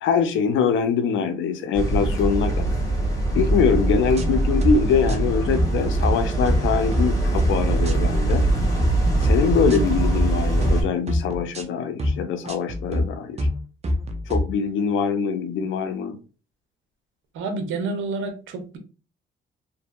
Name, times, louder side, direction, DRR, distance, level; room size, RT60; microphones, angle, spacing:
voice 1, 0.0-2.8 3.3-8.5 9.2-13.4 14.3-16.2, left 6 dB, 75° left, 0.5 m, -23 dB
sound 1, 1.7-10.8, right 2 dB, 15° left, 1.0 m, -22 dB
sound 2, 3.7-3.9 4.1-4.7 5.1-5.3 5.5-6.1 6.5-6.6 6.9-7.5 7.8-8.0 8.3-8.9 9.2-9.4 9.7-10.3 10.6-10.8 11.1-11.6 12.0-12.2 12.5-13.0 13.4-13.6 13.8-14.4, left 1 dB, 35° right, 0.5 m, -25 dB
voice 2, 17.3-18.8, right 3 dB, 80° right, 0.6 m, -29 dB
2.6 x 2.6 x 2.2 m
cardioid pair, 90°, 20 cm